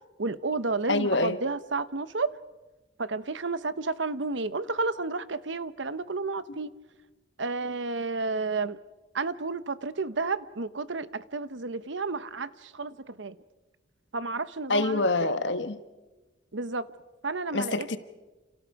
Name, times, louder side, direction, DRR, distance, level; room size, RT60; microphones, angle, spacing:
voice 1, 0.2-2.3 3.0-6.7 7.4-8.8 9.1-13.4 14.1-15.3 16.5-16.9 17.2-17.9, right 3 dB, 80° right, 1.0 m, -31 dB
voice 2, 0.9-1.4 14.7-15.8 17.5-18.0, left 2 dB, 75° left, 1.3 m, -26 dB
29.0 x 28.5 x 4.9 m
head